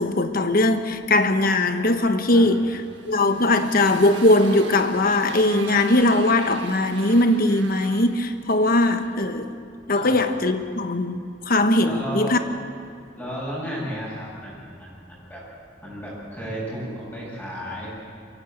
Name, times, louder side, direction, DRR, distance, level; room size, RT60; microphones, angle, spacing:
voice 1, 0.0-2.8 3.1-9.5 9.9-11.2 11.4-12.4, left 2 dB, 50° left, 8 dB, 1.2 m, -20 dB
Motorcycle, 2.7-9.2, right 4 dB, 85° right, 1.7 m, -40 dB
voice 2, 11.8-12.4 13.1-15.4 15.8-17.9, equal, 10° left, -7 dB, 7.6 m, -33 dB
23.0 x 15.5 x 8.0 m, 2.3 s
head